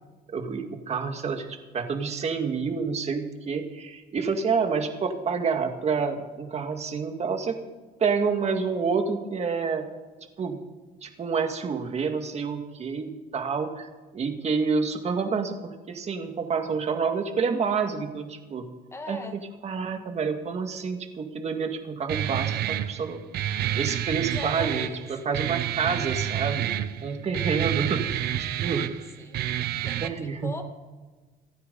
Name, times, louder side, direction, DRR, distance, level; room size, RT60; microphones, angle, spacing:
voice 1, 0.3-7.6 8.0-9.9 10.4-10.6 11.0-18.7 19.1-23.2 23.8-26.7 27.0-28.2 28.6-29.0 30.0-30.5, right 5 dB, 40° right, 5 dB, 1.9 m, -28 dB
voice 2, 18.9-19.4 24.3-25.2 29.2-29.5 29.8-30.6, left 2 dB, 15° left, 4 dB, 2.0 m, -39 dB
Guitar, 22.1-30.1, right 11 dB, 70° right, 0.9 m, -29 dB
27.5 x 9.4 x 4.0 m, 1.3 s
cardioid pair, 110°, 17 cm